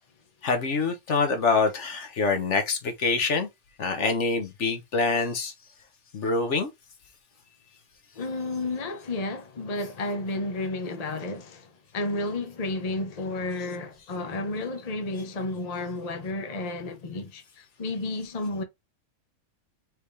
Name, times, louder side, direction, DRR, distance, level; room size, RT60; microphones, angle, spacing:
voice 1, 0.4-3.5 3.8-5.5 6.1-6.7, left 4 dB, 55° left, 1.2 m, -25 dB
voice 2, 8.2-18.6, left 2 dB, 35° left, 0.7 m, -32 dB
4.6 x 3.5 x 3.2 m
omnidirectional pair, 1.5 m